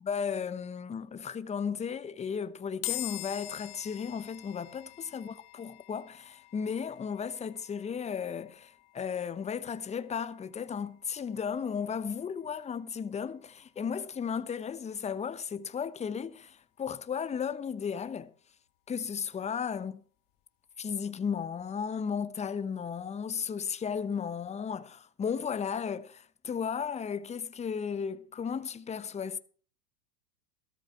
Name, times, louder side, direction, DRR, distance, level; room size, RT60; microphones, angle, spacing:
voice 1, 0.1-18.3 18.9-20.0 20.8-29.4, left 7 dB, 15° left, 0.8 m, -35 dB
sound 1, 2.8-16.2, left 20 dB, 50° left, 1.9 m, -46 dB
14.5 x 13.0 x 4.5 m
hypercardioid pair, 105°, 48 cm